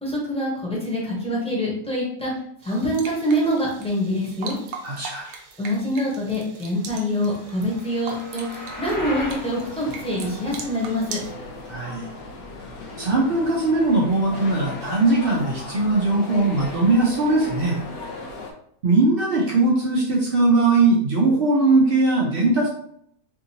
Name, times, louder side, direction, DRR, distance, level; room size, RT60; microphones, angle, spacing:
voice 1, 0.0-2.3 2.6-4.6 5.6-11.2, equal, 5° left, -6 dB, 1.0 m, -25 dB
Running and Dripping Tap, 2.6-11.3, right 5 dB, 75° right, 1.0 m, -40 dB
voice 2, 4.8-5.3 11.7-12.1 13.0-17.8 18.8-22.7, right 2 dB, 55° right, -3 dB, 0.7 m, -20 dB
sound 1, 7.2-9.5, left 1 dB, 40° left, 1.0 m, -35 dB
sound 2, 9.3-18.5, left 3 dB, 80° left, 1.1 m, -37 dB
3.5 x 2.6 x 2.8 m, 0.68 s
omnidirectional pair, 1.6 m